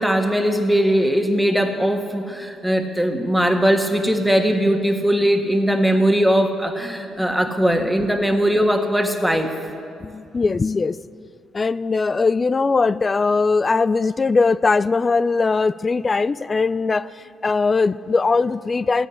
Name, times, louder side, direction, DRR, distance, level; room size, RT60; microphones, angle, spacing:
voice 1, 0.0-9.5, equal, ahead, 4 dB, 1.6 m, -19 dB
voice 2, 10.0-11.0 11.5-17.1 17.4-19.1, left 4 dB, 30° left, 17 dB, 0.3 m, -20 dB
15.0 x 9.1 x 9.7 m, 2.4 s
cardioid pair, 90°, 0 cm